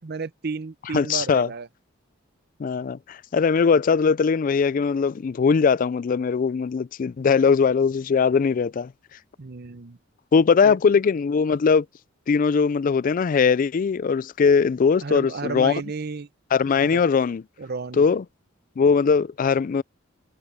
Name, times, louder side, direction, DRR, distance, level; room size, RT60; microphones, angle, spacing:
voice 1, 0.0-1.7 9.4-10.0 10.6-10.8 15.0-16.3 16.8-17.0 17.6-18.1, right 4 dB, 55° right, 0.7 m, -32 dB
voice 2, 0.9-1.5 2.6-8.9 10.3-11.9 12.3-15.7 16.5-17.4 18.0-18.2 18.8-19.8, left 5 dB, 45° left, 0.3 m, -20 dB
head